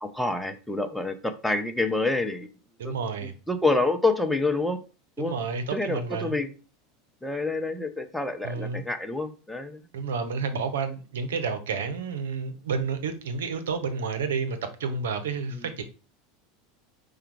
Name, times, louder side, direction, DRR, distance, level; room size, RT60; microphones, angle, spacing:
voice 1, 0.0-2.5 2.8-2.9 3.2-4.8 5.2-5.4 5.7-6.5 7.2-9.8 15.5-15.7, left 2 dB, ahead, 0.7 m, -27 dB
voice 2, 2.8-3.3 5.2-6.3 8.4-8.8 9.9-15.8, right 5 dB, 85° right, 0.8 m, -30 dB
4.9 x 2.4 x 4.6 m
hypercardioid pair, 100°, 0 cm